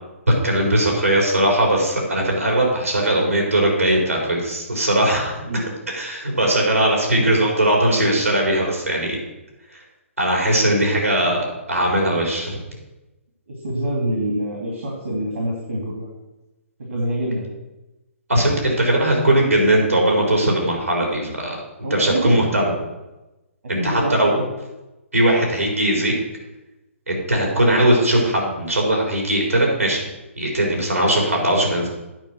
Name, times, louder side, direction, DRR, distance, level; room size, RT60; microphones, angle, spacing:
voice 1, 0.3-9.2 9.7-9.8 10.2-12.6 18.3-21.6 21.9-22.7 23.7-24.4 25.1-26.1 27.1-30.0 30.4-31.9, right 1 dB, 90° right, 0 dB, 4.2 m, -19 dB
voice 2, 5.4-5.7 6.9-7.3 13.5-16.1 16.9-17.5 21.8-22.8 23.8-24.4, right 1 dB, 65° right, -1 dB, 2.6 m, -26 dB
9.1 x 5.5 x 7.8 m, 1.0 s
figure-of-eight pair, 135°, 7 cm